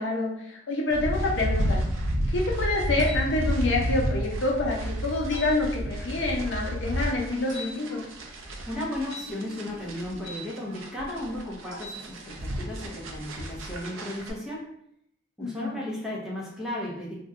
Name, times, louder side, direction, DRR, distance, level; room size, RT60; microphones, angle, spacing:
voice 1, 0.0-1.8 2.3-8.0 15.4-15.8, left 2 dB, 65° left, -2 dB, 0.7 m, -27 dB
sound 1, 0.9-14.3, equal, 85° right, 0.5 m, -31 dB
sound 2, 3.0-3.3 5.3-5.5 7.5-7.7 9.0-10.4 11.7-12.0, left 2 dB, 65° right, 0.9 m, -41 dB
voice 2, 8.7-14.6 15.4-17.1, left 1 dB, ahead, -6 dB, 0.7 m, -35 dB
2.5 x 2.2 x 3.6 m, 0.72 s
head